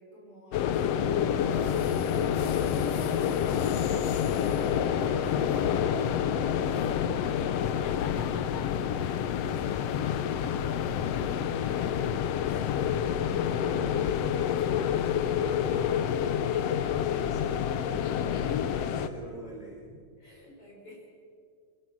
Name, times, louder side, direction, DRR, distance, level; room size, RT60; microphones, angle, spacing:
sound 1, 0.5-19.1, left 8 dB, 80° left, 1.4 m, -28 dB
voice 1, 12.9-15.0 16.9-18.4 19.0-20.0, right 1 dB, ahead, -2 dB, 3.9 m, -46 dB
voice 2, 18.4-19.1 20.2-21.1, left 1 dB, 40° left, -2 dB, 5.8 m, -48 dB
28.5 x 17.0 x 6.1 m, 2.2 s
omnidirectional pair, 3.9 m